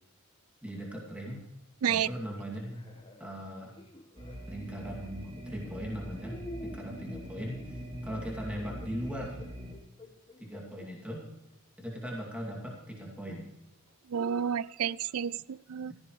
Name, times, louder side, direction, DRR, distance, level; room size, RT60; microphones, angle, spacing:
voice 1, 0.6-1.5 1.9-2.8 3.2-3.8 4.5-9.4 10.4-11.3 11.8-13.5, equal, 5° right, -2 dB, 2.4 m, -39 dB
sound 1, 2.6-4.5 5.4-5.7 6.2-10.9 11.5-11.6 13.3-13.5, left 1 dB, 25° left, 1.2 m, -49 dB
sound 2, 4.2-9.7, equal, 25° right, 2.4 m, -43 dB
voice 2, 14.1-15.9, right 8 dB, 85° right, 21 dB, 0.4 m, -30 dB
16.5 x 14.5 x 3.2 m, 0.96 s
head